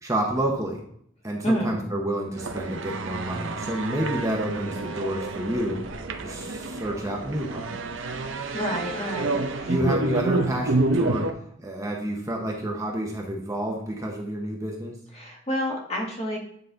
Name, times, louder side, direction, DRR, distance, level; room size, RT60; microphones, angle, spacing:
voice 1, 0.0-0.8 1.2-5.8 6.2-7.7 9.7-11.3 11.6-15.0, right 1 dB, 15° right, 0 dB, 0.9 m, -29 dB
voice 2, 1.4-1.8 8.5-9.8 15.1-16.4, equal, 35° left, -1 dB, 1.7 m, -28 dB
sound 1, 2.4-11.3, right 3 dB, 85° right, 0.7 m, -29 dB
9.2 x 4.0 x 3.9 m, 0.68 s
head